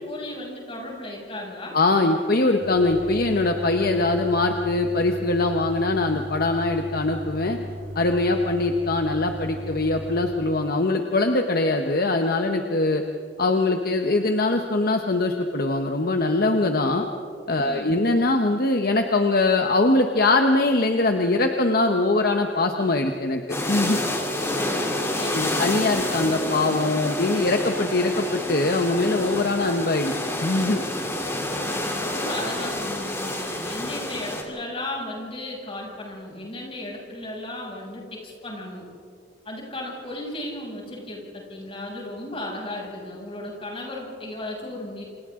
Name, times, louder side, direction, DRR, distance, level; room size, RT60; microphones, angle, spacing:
voice 1, 0.0-1.8 17.6-18.1 24.3-26.1 31.5-38.8 39.5-45.0, left 1 dB, 35° left, -3 dB, 7.3 m, -35 dB
voice 2, 1.7-7.6 7.9-13.0 13.4-17.0 17.5-23.4 23.7-24.0 25.2-30.1 30.4-30.8, left 2 dB, 55° left, 4 dB, 1.1 m, -22 dB
sound 1, 2.6-10.3, right 1 dB, 80° right, 7.9 m, -37 dB
sound 2, 23.5-34.4, left 1 dB, 15° left, 3.3 m, -28 dB
29.5 x 28.0 x 3.8 m, 2.2 s
head